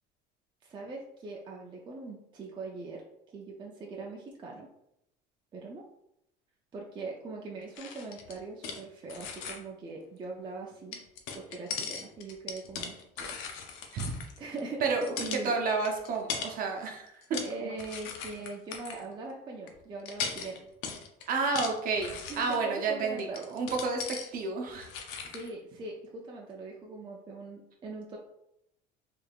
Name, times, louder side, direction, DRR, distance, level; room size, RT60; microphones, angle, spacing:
voice 1, 0.6-3.0 3.3-4.7 5.5-5.8 6.7-11.0 11.3-13.4 13.8-13.9 14.4-15.5 17.4-20.6 22.3-23.5 25.2-28.2, right 3 dB, 25° right, -1 dB, 0.4 m, -41 dB
sound 1, 7.8-8.8 9.1-9.6 10.9-14.6 14.9-15.4 15.8-16.6 17.1-17.5 17.8-19.0 19.7-19.8 20.1-22.6 23.2-24.3 24.7-25.5, left 6 dB, 90° left, 0.5 m, -39 dB
voice 2, 14.8-17.7 21.3-24.9, right 4 dB, 50° right, 2 dB, 0.7 m, -31 dB
3.4 x 3.4 x 2.3 m, 0.79 s
cardioid pair, 140°, 19 cm